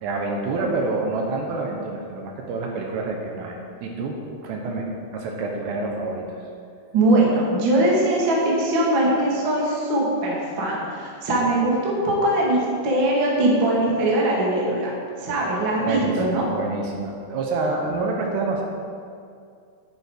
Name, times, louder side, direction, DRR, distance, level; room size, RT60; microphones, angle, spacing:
voice 1, 0.0-4.2 4.4-4.9 5.1-6.2 15.8-18.6, right 3 dB, 75° right, 1 dB, 3.1 m, -27 dB
voice 2, 6.9-14.9 15.2-16.4, right 1 dB, 40° right, -4 dB, 1.7 m, -21 dB
10.5 x 9.6 x 4.6 m, 2.3 s
omnidirectional pair, 5.2 m